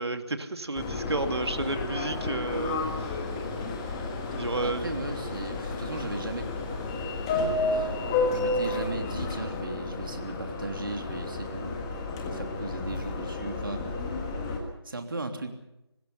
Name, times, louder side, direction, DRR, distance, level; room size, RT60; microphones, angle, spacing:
voice 1, 0.0-3.2 4.3-4.9, right 2 dB, 70° right, 8 dB, 2.4 m, -31 dB
Subway metro underground, 0.8-14.6, left 3 dB, 10° left, 1.6 m, -31 dB
voice 2, 4.6-6.5 7.7-8.0 8.3-11.8 12.3-13.9 14.8-15.6, right 2 dB, 50° right, 5 dB, 3.2 m, -37 dB
25.5 x 20.5 x 5.6 m, 0.89 s
figure-of-eight pair, 170°, 14 cm